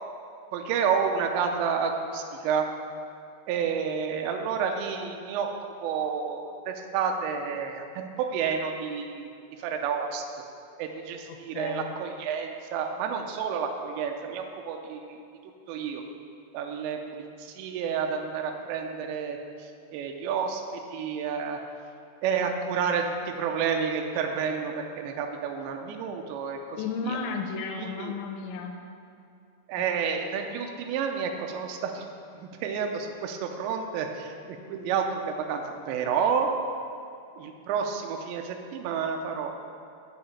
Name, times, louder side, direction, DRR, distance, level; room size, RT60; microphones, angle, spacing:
voice 1, 0.5-2.7 3.5-5.5 5.8-9.3 9.6-10.2 10.8-15.2 15.7-16.0 16.5-19.4 19.9-20.6 20.9-21.6 22.2-26.8 27.1-27.2 27.8-28.1 29.7-32.0 32.3-34.3 34.7-35.6 35.9-36.5 37.4-39.5, right 6 dB, 80° right, 3 dB, 2.9 m, -30 dB
voice 2, 11.3-11.9 26.8-28.8, left 4 dB, 80° left, 4 dB, 3.0 m, -33 dB
8.8 x 6.4 x 7.2 m, 2.5 s
omnidirectional pair, 5.3 m